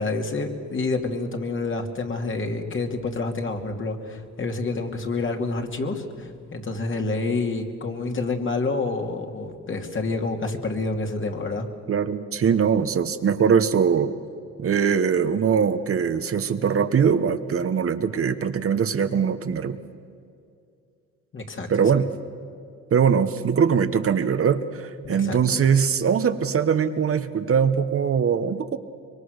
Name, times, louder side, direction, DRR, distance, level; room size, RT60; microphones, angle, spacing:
voice 1, 0.0-11.7 21.3-21.7 25.0-25.6, left 3 dB, 40° left, 3 dB, 2.7 m, -28 dB
voice 2, 11.9-14.1 14.6-19.8 21.7-22.1 22.9-28.8, right 7 dB, 50° right, 9 dB, 1.1 m, -22 dB
25.0 x 23.0 x 6.6 m, 2.4 s
cardioid pair, 90°, 30 cm